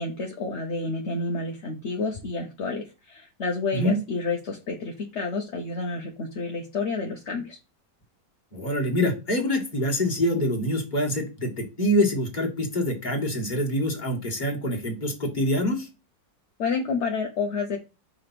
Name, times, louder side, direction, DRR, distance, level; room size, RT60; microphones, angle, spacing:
voice 1, 0.0-7.6 16.6-17.8, left 4 dB, 50° left, 1 dB, 1.0 m, -29 dB
voice 2, 8.5-15.9, left 1 dB, 25° left, 0 dB, 1.8 m, -25 dB
5.0 x 3.8 x 5.8 m, 0.29 s
omnidirectional pair, 1.9 m